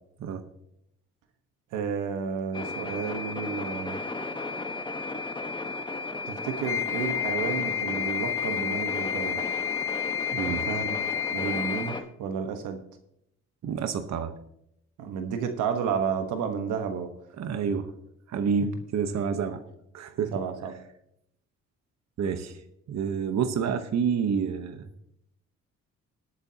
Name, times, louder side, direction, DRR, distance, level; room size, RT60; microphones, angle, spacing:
voice 1, 1.7-4.0 6.3-9.4 10.4-11.0 11.3-12.8 15.0-17.1 20.3-20.8, right 6 dB, 90° right, 6 dB, 1.3 m, -31 dB
sound 1, 2.5-12.0, left 3 dB, 15° left, 1.2 m, -34 dB
Wind instrument woodwind instrument, 6.6-12.0, left 11 dB, 45° left, 0.5 m, -31 dB
voice 2, 10.3-10.6 13.6-14.3 17.4-17.9 18.3-19.6 19.9-20.3 22.2-22.6 22.9-24.9, right 6 dB, 60° right, 8 dB, 1.1 m, -28 dB
21.0 x 8.5 x 2.8 m, 0.78 s
cardioid pair, 90°, 30 cm